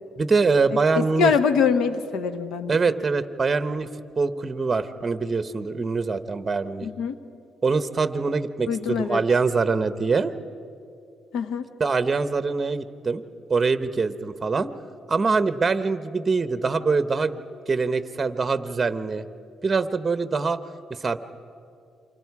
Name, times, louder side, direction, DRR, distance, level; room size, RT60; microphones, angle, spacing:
voice 1, 0.2-1.3 2.7-3.9 4.2-6.9 7.6-10.3 11.8-13.2 13.5-14.7 15.1-17.4 17.7-19.2 19.6-20.6 20.9-21.2, right 4 dB, 30° right, 11 dB, 1.0 m, -24 dB
voice 2, 1.0-2.8 6.8-7.1 8.7-9.2 11.3-11.6, left 6 dB, 80° left, 10 dB, 1.2 m, -23 dB
28.5 x 25.5 x 4.8 m, 2.6 s
cardioid pair, 90°, 0 cm